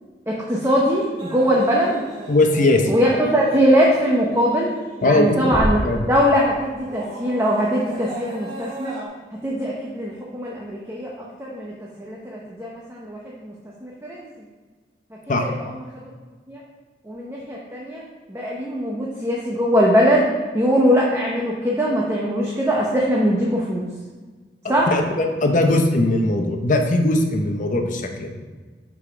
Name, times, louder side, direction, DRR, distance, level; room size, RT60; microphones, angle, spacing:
voice 1, 0.3-2.0 2.9-4.7 5.0-5.8 6.1-8.9 9.4-11.1 11.4-11.7 12.0-13.5 13.8-14.2 15.4-15.7 16.5-16.6 17.1-18.0 18.3-20.3 20.5-23.9 24.7-24.9, equal, 15° right, -4 dB, 0.8 m, -21 dB
sound 1, 0.7-5.9 6.3-9.1, right 1 dB, 30° right, 1.7 m, -33 dB
voice 2, 2.3-2.9 5.0-5.5 5.8-6.0 15.3-15.4 24.6-28.3, left 2 dB, 45° left, 4 dB, 0.7 m, -19 dB
5.5 x 4.8 x 4.9 m, 1.4 s
head